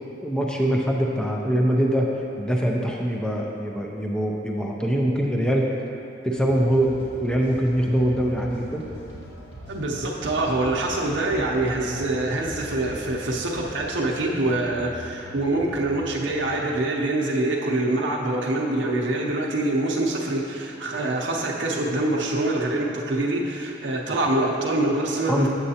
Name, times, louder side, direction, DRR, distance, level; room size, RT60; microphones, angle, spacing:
voice 1, 0.2-2.1 2.4-5.7 6.2-8.9 25.3-25.5, equal, 5° left, -1 dB, 0.4 m, -23 dB
sound 1, 6.3-16.5, equal, 70° left, 1.5 m, -41 dB
voice 2, 9.7-25.5, right 2 dB, 85° right, -2 dB, 0.6 m, -25 dB
7.8 x 7.6 x 2.8 m, 2.8 s
head